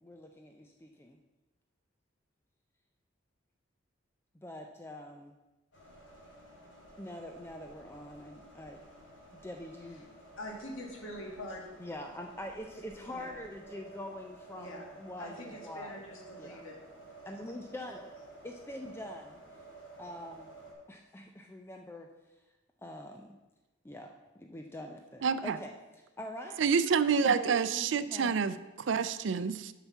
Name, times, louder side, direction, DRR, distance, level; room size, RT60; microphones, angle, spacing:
voice 1, 0.0-1.2 4.4-5.3 7.0-8.8 9.4-10.1 11.8-16.0 16.4-16.6 17.3-18.1 18.4-19.4 20.0-20.5 20.9-22.1 22.8-23.4 23.8-24.1 24.4-26.8 27.1-28.5, left 1 dB, 10° left, 3 dB, 0.4 m, -44 dB
sound 1, 5.7-20.7, right 2 dB, 65° left, 2.3 m, -53 dB
voice 2, 10.4-11.7 13.1-13.4 14.6-14.8 15.2-16.8, left 1 dB, 80° left, 0 dB, 1.8 m, -44 dB
voice 3, 25.2-25.6 26.6-29.7, right 6 dB, 65° right, 13 dB, 0.4 m, -28 dB
7.9 x 5.7 x 5.7 m, 1.1 s
head